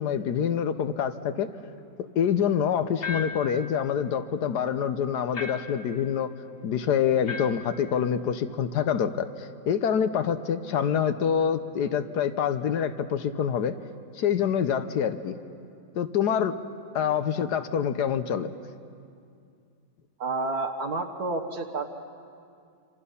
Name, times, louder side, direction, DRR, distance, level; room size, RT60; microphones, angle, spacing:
voice 1, 0.0-1.5 2.2-6.3 6.6-13.8 14.2-15.4 16.0-16.6 16.9-18.5, left 8 dB, 75° left, 10 dB, 1.4 m, -26 dB
sound 1, 3.0-3.6 5.3-5.8 7.3-7.7, left 4 dB, 40° left, 1.2 m, -35 dB
voice 2, 20.2-21.9, right 3 dB, 65° right, 3 dB, 1.7 m, -30 dB
26.5 x 26.0 x 5.6 m, 2.4 s
omnidirectional pair, 1.8 m